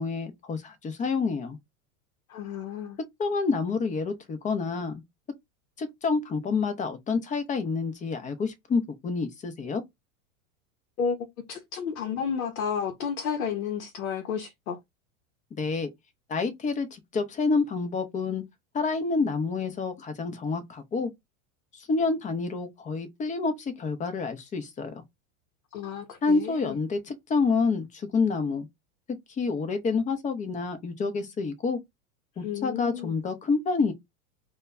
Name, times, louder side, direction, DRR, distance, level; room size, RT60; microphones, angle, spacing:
voice 1, 0.0-1.6 3.2-5.0 5.8-9.8 15.6-15.9 16.3-18.4 18.7-21.1 21.7-25.0 26.2-28.7 29.4-31.8 32.4-33.9, left 4 dB, 20° left, 0.5 m, -28 dB
voice 2, 2.3-3.0 11.0-11.2 11.5-14.8 25.7-26.8 32.4-33.1, left 7 dB, 90° left, 0.7 m, -32 dB
2.1 x 2.1 x 3.5 m
hypercardioid pair, 105°, 42 cm